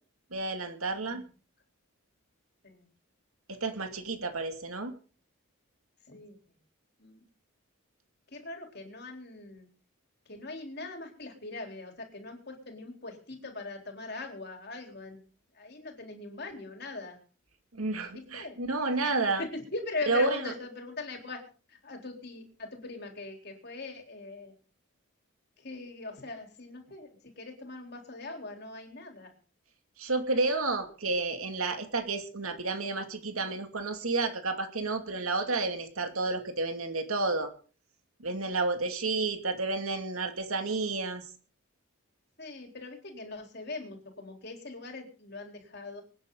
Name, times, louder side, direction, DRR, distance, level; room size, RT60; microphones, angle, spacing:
voice 1, 0.3-1.2 3.5-4.9 17.7-19.4 20.1-20.5 30.0-37.5 38.2-41.3, right 3 dB, 90° right, 6 dB, 2.5 m, -31 dB
voice 2, 8.3-9.7 10.3-15.2 15.5-17.2 18.1-18.6 19.0-19.1 19.4-21.4 21.7-24.5 25.6-29.3 42.4-46.0, left 3 dB, 50° left, 3 dB, 3.8 m, -41 dB
25.5 x 9.9 x 3.9 m, 0.39 s
head